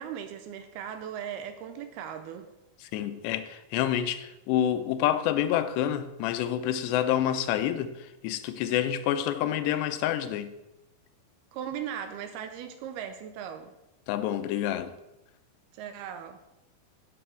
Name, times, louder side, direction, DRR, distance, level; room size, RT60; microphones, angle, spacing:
voice 1, 0.0-2.5 11.5-13.7 15.7-16.4, right 9 dB, 75° right, 2.5 m, -38 dB
voice 2, 2.9-10.5 14.1-14.9, left 11 dB, 85° left, 2.8 m, -28 dB
8.5 x 7.4 x 7.0 m
omnidirectional pair, 4.9 m